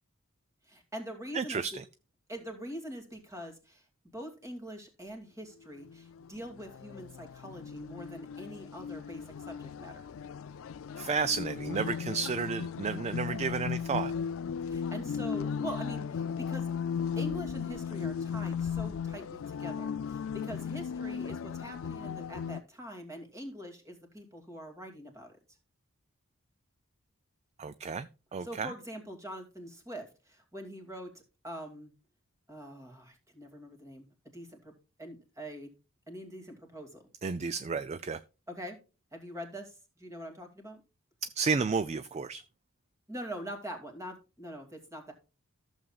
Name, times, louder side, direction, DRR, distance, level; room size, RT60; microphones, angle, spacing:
voice 1, 0.7-1.8 2.3-3.8 4.1-10.0 14.7-16.7 17.2-25.3 28.4-31.9 32.5-34.1 34.3-34.7 35.0-35.7 36.1-37.0 38.5-38.8 39.1-40.8 43.1-45.1, equal, 15° right, 4 dB, 2.3 m, -44 dB
voice 2, 1.3-1.8 11.0-14.1 27.6-28.7 37.2-38.2 41.4-42.4, right 5 dB, 30° right, 14 dB, 0.3 m, -32 dB
sound 1, 5.8-22.6, left 7 dB, 60° left, 0.3 m, -36 dB
14.0 x 7.2 x 2.4 m, 0.30 s
head